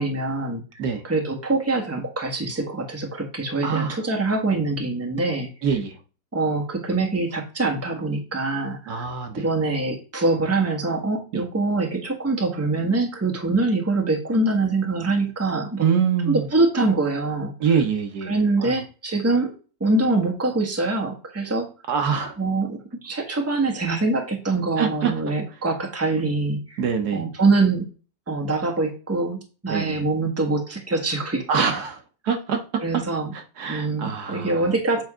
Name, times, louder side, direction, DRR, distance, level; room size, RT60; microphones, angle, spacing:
voice 1, 0.0-5.5 6.3-9.0 9.4-15.8 16.3-17.5 18.3-19.5 19.8-21.7 22.4-26.8 27.1-27.9 28.3-31.7 32.8-33.3 33.7-35.0, right 3 dB, 10° right, 2 dB, 1.1 m, -24 dB
voice 2, 3.6-4.0 5.6-6.0 8.9-9.5 11.3-11.4 15.8-16.5 17.6-18.8 21.9-22.4 24.8-25.1 26.8-27.2 29.7-30.0 31.5-32.0 32.2-33.0 33.3-34.7, right 6 dB, 70° right, 6 dB, 1.4 m, -25 dB
7.9 x 3.4 x 4.9 m, 0.36 s
omnidirectional pair, 1.8 m